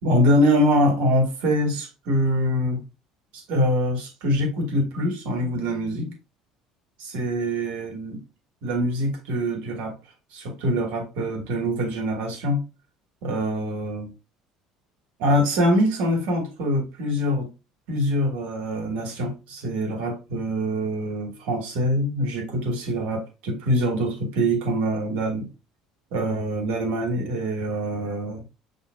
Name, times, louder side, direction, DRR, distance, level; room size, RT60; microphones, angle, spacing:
voice 1, 0.0-2.9 3.3-6.1 7.1-8.2 8.6-9.9 10.3-12.6 13.2-14.1 15.2-17.5 17.9-25.5 26.1-28.4, equal, 60° right, 1.5 m, -24 dB
6.0 x 3.7 x 2.2 m
figure-of-eight pair, 60°, 3 cm